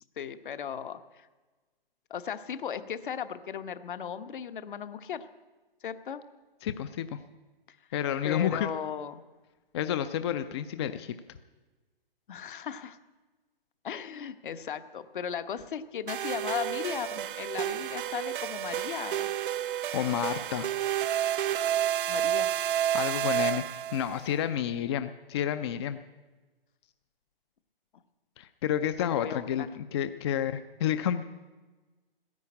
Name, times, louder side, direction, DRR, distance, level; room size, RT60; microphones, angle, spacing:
voice 1, 0.2-1.3 2.1-5.2 5.8-6.2 7.7-7.8 8.2-9.2 12.3-13.0 13.8-19.3 22.1-22.5 29.0-29.7, left 8 dB, 60° left, 11 dB, 1.1 m, -36 dB
voice 2, 6.6-7.2 7.9-8.7 9.7-11.1 19.9-20.7 22.9-26.0 28.4-31.2, left 10 dB, 30° left, 11 dB, 0.5 m, -30 dB
sound 1, 16.1-24.2, right 11 dB, 60° right, 0.5 m, -30 dB
14.5 x 10.5 x 8.5 m, 1.3 s
figure-of-eight pair, 135°, 29 cm